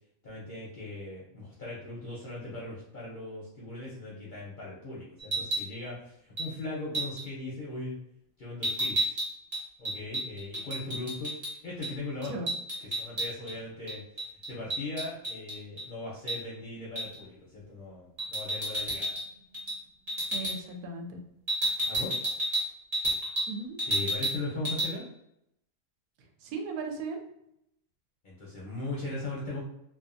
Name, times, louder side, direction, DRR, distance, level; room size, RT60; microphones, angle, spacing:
voice 1, 0.2-8.0 8.4-9.1 9.8-11.3 11.6-12.4 13.0-14.0 14.5-19.2 21.9-22.1 23.9-25.1 28.2-29.6, left 2 dB, 50° left, -6 dB, 0.6 m, -39 dB
sound 1, 5.2-5.7 6.4-6.5 6.9-7.2 8.6-11.5 11.8-11.9 12.2-13.5 13.9-15.9 16.3-16.4 17.0-17.2 18.2-19.3 19.5-19.8 20.1-20.6 21.5-23.5 23.8-24.4 24.7-24.9, right 1 dB, 30° right, 0.8 m, -31 dB
voice 2, 20.3-21.2 23.5-23.8 26.2-27.2, right 3 dB, 85° right, 3 dB, 1.1 m, -37 dB
2.4 x 2.4 x 2.5 m, 0.79 s
omnidirectional pair, 1.5 m